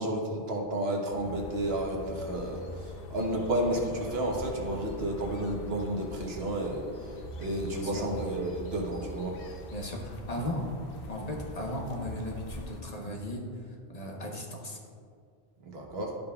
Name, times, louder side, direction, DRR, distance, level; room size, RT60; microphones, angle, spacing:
voice 1, 0.0-9.4 15.6-16.2, right 1 dB, 70° right, 0 dB, 1.3 m, -32 dB
sound 1, 1.2-12.8, left 1 dB, 60° left, 0.9 m, -43 dB
voice 2, 7.7-8.0 9.7-10.7 11.1-14.8, left 1 dB, 40° left, -1 dB, 1.1 m, -36 dB
12.5 x 5.2 x 2.3 m, 2.2 s
omnidirectional pair, 1.1 m